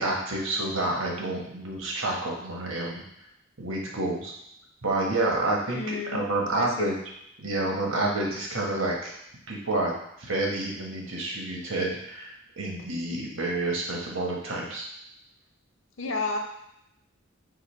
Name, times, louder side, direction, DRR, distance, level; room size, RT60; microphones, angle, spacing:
voice 1, 0.0-3.0 3.6-4.3 4.8-6.9 7.4-9.2 9.5-9.9 10.2-14.8, right 2 dB, 80° right, -1 dB, 1.1 m, -29 dB
voice 2, 5.7-6.2 6.5-6.9 16.0-16.4, left 3 dB, 80° left, 3 dB, 0.7 m, -31 dB
5.0 x 2.2 x 4.2 m, 0.77 s
head